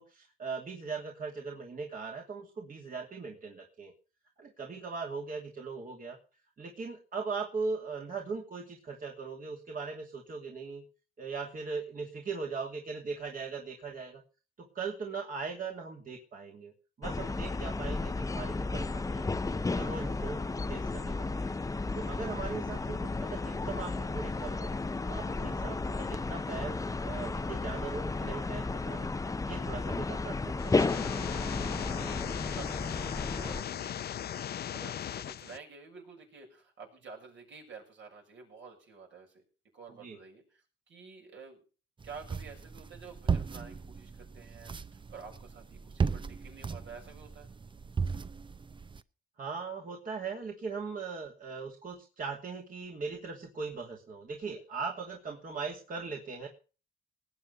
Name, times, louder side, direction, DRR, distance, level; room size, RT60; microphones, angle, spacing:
voice 1, 0.0-3.9 4.4-6.2 6.6-10.8 11.2-14.2 14.6-16.7 17.0-19.3 19.7-20.4 20.7-21.5 22.0-24.7 25.1-29.1 29.4-31.0 40.0-40.2 49.4-56.5, right 4 dB, 45° right, 0 dB, 2.6 m, -39 dB
sound 1, 17.0-33.6, left 3 dB, 15° left, 0.7 m, -33 dB
sound 2, 30.6-35.6, left 10 dB, 55° left, 0.7 m, -38 dB
voice 2, 32.1-39.4 39.7-40.6 40.9-41.6 42.0-44.7 45.1-47.5, right 5 dB, 70° right, 1 dB, 7.2 m, -50 dB
sound 3, 42.0-49.0, right 5 dB, 25° right, 0.7 m, -36 dB
19.0 x 8.3 x 5.5 m, 0.36 s
cardioid pair, 90°, 20 cm